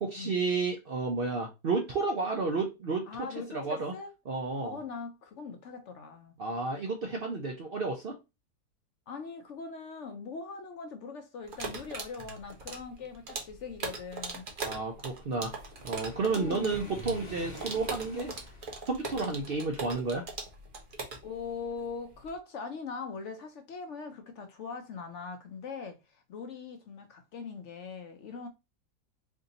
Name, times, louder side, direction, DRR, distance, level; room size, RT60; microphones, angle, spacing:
voice 1, 0.0-3.3 3.5-3.9 4.3-4.8 6.4-8.2 14.6-15.5 15.8-18.3 18.9-20.2, right 3 dB, 75° right, 0.5 m, -31 dB
voice 2, 3.1-4.1 4.6-6.3 9.1-14.5 16.3-17.1 21.2-28.5, left 5 dB, 65° left, 0.7 m, -41 dB
sound 1, 11.5-22.3, right 3 dB, 45° right, 0.7 m, -40 dB
Waves surf, 15.5-18.8, equal, 30° left, 1.1 m, -47 dB
3.5 x 2.6 x 3.9 m
omnidirectional pair, 1.8 m